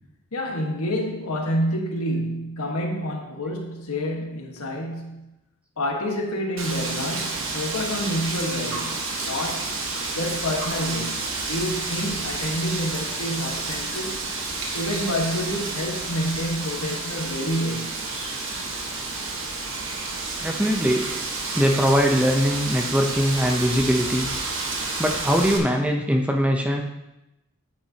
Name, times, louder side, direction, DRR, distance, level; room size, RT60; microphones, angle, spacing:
voice 1, 0.3-5.4 5.8-9.8 10.1-14.2 14.7-18.1, equal, 80° left, 1 dB, 1.5 m, -28 dB
Wind, 6.6-25.6, right 3 dB, 60° right, 1.4 m, -30 dB
voice 2, 20.4-21.1 21.5-24.3 25.0-26.8, equal, 5° right, 2 dB, 0.6 m, -21 dB
9.6 x 8.5 x 2.9 m, 0.93 s
head